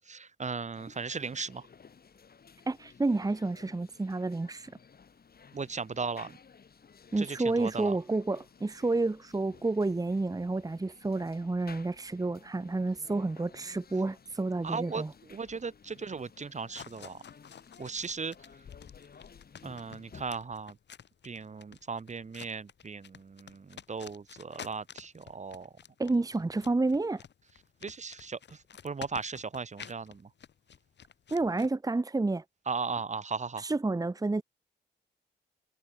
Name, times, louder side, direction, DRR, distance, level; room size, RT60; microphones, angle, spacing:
voice 1, 0.1-1.6 5.5-6.3 7.2-7.3 7.6-8.0 14.6-15.0 15.3-17.2 17.8-18.3 19.6-20.7 21.2-25.7 27.8-28.6 28.8-30.3 32.7-33.7, right 5 dB, 40° right, 1.4 m, -37 dB
sound 1, 0.7-20.2, left 6 dB, 55° left, 5.2 m, -56 dB
voice 2, 2.7-4.7 7.1-15.1 26.0-27.2 31.3-32.4 33.6-34.4, right 2 dB, 20° right, 1.2 m, -30 dB
sound 2, 12.6-31.7, left 8 dB, 70° left, 2.0 m, -52 dB
cardioid pair, 80°, 19 cm